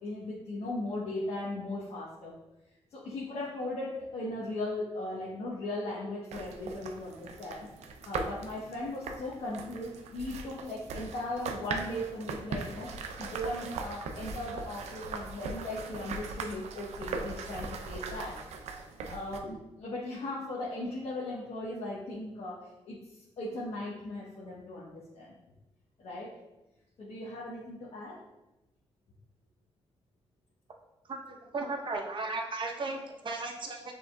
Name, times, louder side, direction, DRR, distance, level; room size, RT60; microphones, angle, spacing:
voice 1, 0.0-2.3 2.9-7.7 8.0-18.4 19.1-25.3 26.0-26.3 27.0-28.2, left 1 dB, 75° left, -7 dB, 1.0 m, -38 dB
sound 1, 6.3-19.4, right 4 dB, 90° right, 0.4 m, -40 dB
voice 2, 31.0-33.9, right 3 dB, 50° right, 1 dB, 0.8 m, -36 dB
6.2 x 3.6 x 2.3 m, 0.96 s
cardioid pair, 85°, 11 cm